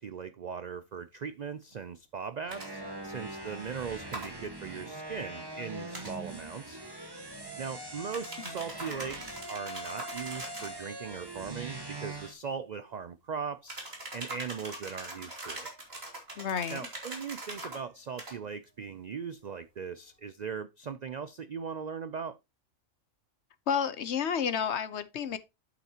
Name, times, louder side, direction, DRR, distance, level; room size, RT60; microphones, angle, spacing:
voice 1, 0.0-6.8 7.6-13.8 14.1-15.7 16.7-22.4, right 6 dB, 85° right, 0.3 m, -39 dB
sound 1, 2.4-12.3, right 1 dB, 20° right, 1.4 m, -42 dB
sound 2, 2.5-2.7 4.1-4.3 5.9-6.1 8.1-10.8 13.7-17.8 18.2-18.4, right 2 dB, 45° right, 3.1 m, -42 dB
voice 2, 16.4-16.9 23.7-25.4, left 7 dB, 60° left, 1.0 m, -30 dB
8.3 x 8.2 x 2.8 m
omnidirectional pair, 1.4 m